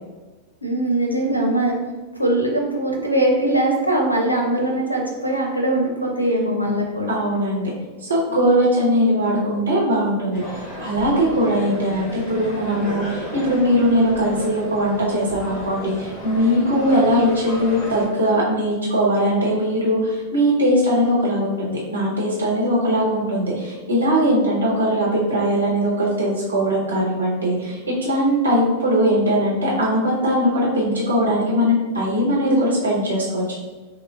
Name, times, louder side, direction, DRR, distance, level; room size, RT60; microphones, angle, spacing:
voice 1, 0.6-1.8 2.2-7.2, right 1 dB, 85° left, 1 dB, 0.7 m, -21 dB
voice 2, 7.1-7.7 8.0-33.6, equal, 80° right, -5 dB, 1.2 m, -20 dB
sound 1, 10.3-18.1, equal, 40° left, 1.0 m, -33 dB
6.1 x 2.1 x 2.5 m, 1.3 s
figure-of-eight pair, 90°, 0 cm